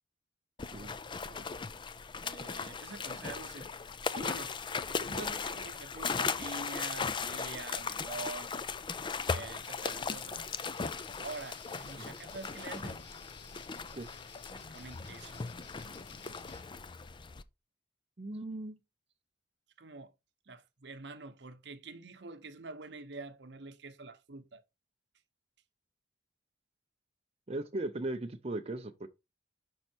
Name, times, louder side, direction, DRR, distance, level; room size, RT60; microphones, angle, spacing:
sound 1, 0.6-17.4, left 5 dB, 25° left, 0.4 m, -38 dB
voice 1, 2.1-3.7 4.1-4.5 4.9-8.5 9.2-10.5 11.2-13.0 14.5-15.4 19.8-20.1 20.5-24.6, right 3 dB, 65° right, 0.9 m, -46 dB
sound 2, 9.8-16.6, left 4 dB, 65° left, 1.2 m, -54 dB
voice 2, 18.2-18.8 27.5-29.1, right 2 dB, 35° right, 0.6 m, -37 dB
6.4 x 5.5 x 4.4 m
head